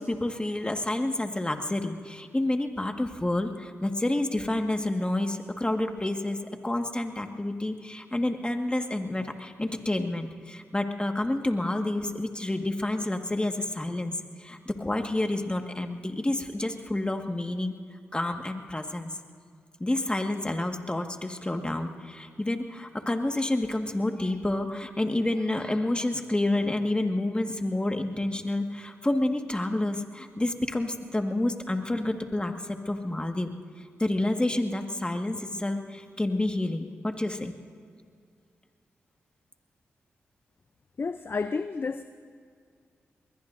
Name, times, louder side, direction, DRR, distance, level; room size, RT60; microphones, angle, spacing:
voice 1, 0.0-6.4 6.6-14.1 14.4-17.7 18.1-19.2 19.8-33.5 34.0-37.5, left 1 dB, 20° left, 5 dB, 1.7 m, -29 dB
voice 2, 41.0-42.0, left 4 dB, 45° left, 10 dB, 0.6 m, -30 dB
22.5 x 21.0 x 2.7 m, 2.1 s
supercardioid pair, 40°, 5 cm